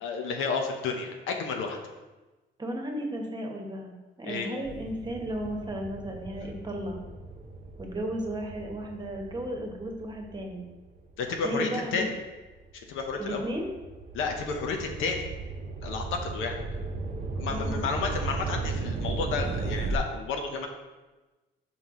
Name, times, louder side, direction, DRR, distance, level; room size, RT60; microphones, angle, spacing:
voice 1, 0.0-1.8 4.2-4.5 11.2-12.1 12.7-13.4 14.1-15.3 15.8-16.6 17.4-20.7, left 4 dB, 90° left, 3 dB, 0.8 m, -31 dB
voice 2, 2.6-3.9 4.2-7.0 7.8-10.6 11.4-12.1 13.2-13.7 17.4-17.8, right 1 dB, 20° right, 1 dB, 1.1 m, -34 dB
sound 1, 4.7-11.4 12.0-20.0, right 3 dB, 40° right, 0.6 m, -36 dB
5.5 x 4.7 x 3.7 m, 1.2 s
cardioid pair, 90°, 20 cm